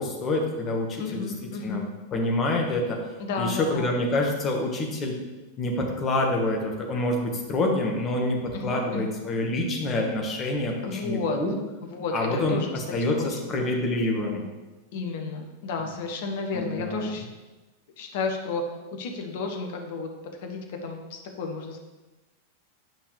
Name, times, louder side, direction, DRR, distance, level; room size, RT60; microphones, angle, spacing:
voice 1, 0.0-1.3 1.6-1.8 2.1-3.0 3.4-5.2 5.6-11.5 12.1-14.4 16.5-17.2, left 2 dB, 25° left, 1 dB, 1.5 m, -27 dB
voice 2, 1.0-1.9 3.2-3.9 8.5-9.2 10.8-11.4 11.8-12.7 13.0-13.7 14.9-17.2 18.0-18.6 18.9-20.1 20.4-21.8, left 4 dB, 50° left, 3 dB, 1.1 m, -32 dB
9.3 x 5.6 x 3.3 m, 1.2 s
figure-of-eight pair, 90°, 0 cm